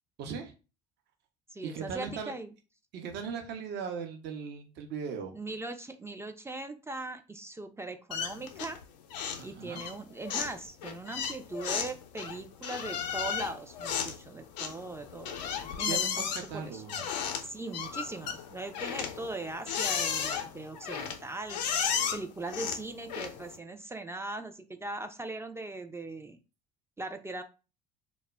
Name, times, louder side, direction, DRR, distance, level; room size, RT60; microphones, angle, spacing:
voice 1, 0.2-0.5 1.6-2.3 2.9-5.4 9.4-9.8 15.9-16.9, right 6 dB, 55° right, 4 dB, 0.6 m, -38 dB
voice 2, 1.5-2.5 5.3-8.8 9.4-16.8 17.4-26.4 27.0-27.4, right 2 dB, 10° right, 7 dB, 0.3 m, -40 dB
sound 1, 8.1-8.8 9.1-9.5 9.7-23.6, left 7 dB, 85° left, 0.4 m, -34 dB
2.1 x 2.0 x 3.3 m, 0.32 s
hypercardioid pair, 65°, 21 cm